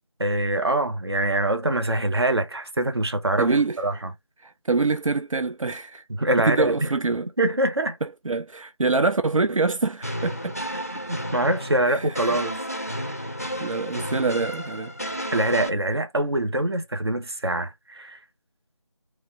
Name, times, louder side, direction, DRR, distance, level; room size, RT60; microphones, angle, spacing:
voice 1, 0.2-3.5 3.8-4.1 6.1-6.9 7.4-8.0 11.1-12.6 15.3-18.2, right 1 dB, 50° right, 1.0 m, -24 dB
voice 2, 3.4-3.8 4.4-6.0 6.5-7.3 8.2-10.6 11.9-12.4 13.6-14.9, right 3 dB, 85° right, 0.6 m, -25 dB
sound 1, 10.0-15.7, equal, 30° left, 0.5 m, -32 dB
3.2 x 3.1 x 3.8 m
figure-of-eight pair, 170°, 17 cm